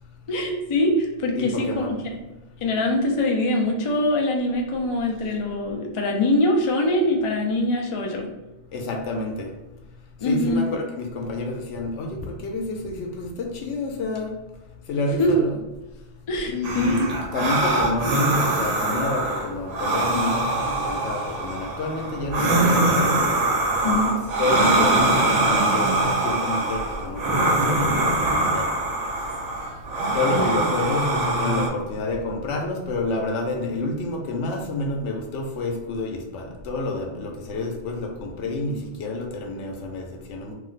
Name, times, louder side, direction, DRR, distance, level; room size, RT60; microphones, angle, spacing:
voice 1, 0.3-1.8 2.6-8.3 10.2-10.6 15.2-15.4 16.3-17.0 23.8-24.2 30.3-30.5, left 1 dB, 55° left, 1 dB, 0.3 m, -23 dB
voice 2, 1.4-1.9 8.7-9.5 10.2-14.3 14.9-15.6 16.5-23.5 24.4-28.7 30.1-40.5, left 2 dB, 85° left, 2 dB, 0.9 m, -29 dB
sound 1, 16.6-31.7, right 2 dB, 45° right, 0.5 m, -23 dB
2.6 x 2.1 x 3.8 m, 1.1 s
omnidirectional pair, 1.2 m